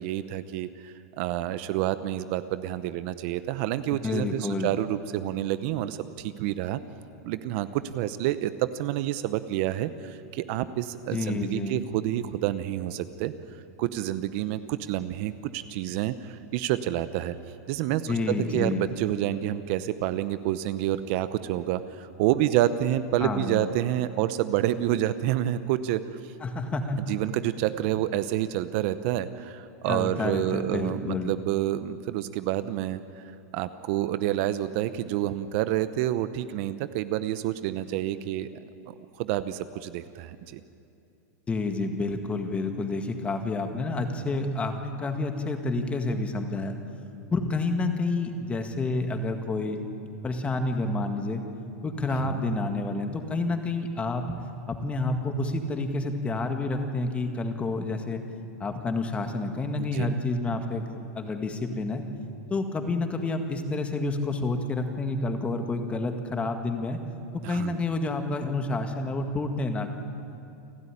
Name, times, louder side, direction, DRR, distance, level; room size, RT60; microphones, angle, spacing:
voice 1, 0.0-6.8 7.2-17.3 17.7-26.3 27.1-33.2 33.5-38.6 38.9-40.6 52.1-52.4 59.8-60.1 67.4-67.8, right 13 dB, 50° right, 13 dB, 0.8 m, -28 dB
voice 2, 4.0-4.7 11.1-11.7 18.1-18.8 23.2-23.7 26.4-27.0 29.9-31.3 41.5-46.8 47.3-49.8 50.2-51.4 51.8-54.3 54.7-58.2 58.6-62.0 62.5-67.0 67.5-69.9, left 2 dB, 15° left, 6 dB, 1.8 m, -29 dB
29.0 x 12.5 x 9.9 m, 2.7 s
supercardioid pair, 150°, 9 cm